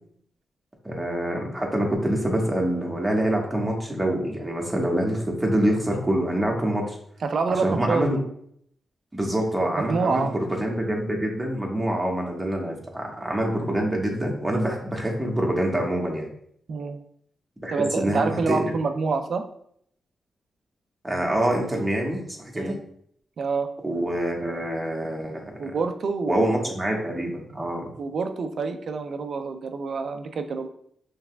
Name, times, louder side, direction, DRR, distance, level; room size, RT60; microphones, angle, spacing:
voice 1, 0.8-7.0 7.6-8.2 9.1-16.3 17.6-18.7 21.0-22.8 23.8-25.7 26.3-27.9, right 1 dB, 15° right, 0 dB, 1.2 m, -26 dB
voice 2, 7.2-8.1 9.8-10.4 16.7-17.0 17.7-19.4 22.5-22.8 23.4-23.7 25.6-26.8 28.0-30.7, right 4 dB, 65° right, 8 dB, 0.4 m, -27 dB
5.6 x 3.3 x 2.2 m, 0.67 s
cardioid pair, 70°, 0 cm